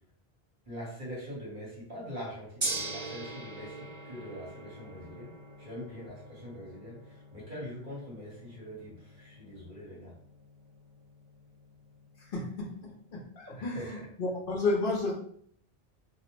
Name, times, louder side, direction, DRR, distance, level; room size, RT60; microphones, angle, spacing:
voice 1, 0.6-5.3 5.6-7.0 7.3-10.1 13.6-13.9, equal, 50° right, -6 dB, 1.2 m, -43 dB
Gong, 2.6-12.8, right 2 dB, 30° right, 0.7 m, -43 dB
voice 2, 12.3-15.1, left 3 dB, 60° left, -2 dB, 0.7 m, -32 dB
2.5 x 2.0 x 2.9 m, 0.63 s
omnidirectional pair, 1.1 m